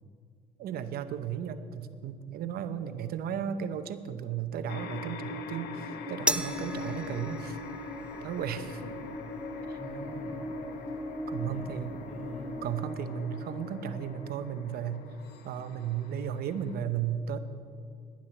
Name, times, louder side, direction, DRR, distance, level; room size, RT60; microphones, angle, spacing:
voice 1, 0.6-7.6 8.2-8.8 9.7-9.8 11.3-11.9 12.6-15.0 15.4-17.4, right 8 dB, 65° right, 10 dB, 0.8 m, -35 dB
sound 1, 4.7-16.8, left 2 dB, 75° left, 1.0 m, -44 dB
sound 2, 5.1-14.3, left 2 dB, 60° left, 3.2 m, -41 dB
sound 3, 6.3-12.8, right 2 dB, 5° right, 0.3 m, -39 dB
voice 2, 8.4-9.0 9.7-10.6 11.4-12.6, equal, 40° left, -1 dB, 4.0 m, -44 dB
10.5 x 10.0 x 7.0 m, 2.3 s
cardioid pair, 110°, 17 cm